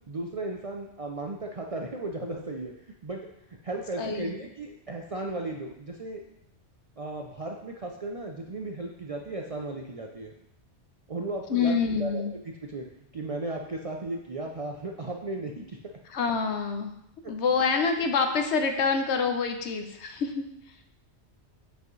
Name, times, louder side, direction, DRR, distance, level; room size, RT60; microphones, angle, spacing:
voice 1, 0.1-2.7 3.0-3.2 3.6-6.2 7.0-10.3 11.1-11.7 12.0-12.9 13.1-15.8 17.2-17.3, right 2 dB, 50° right, 1 dB, 0.4 m, -35 dB
voice 2, 4.0-4.4 11.5-12.3 16.1-16.9 17.3-20.4, left 5 dB, 70° left, 5 dB, 1.0 m, -26 dB
7.7 x 5.0 x 3.1 m, 0.80 s
omnidirectional pair, 1.2 m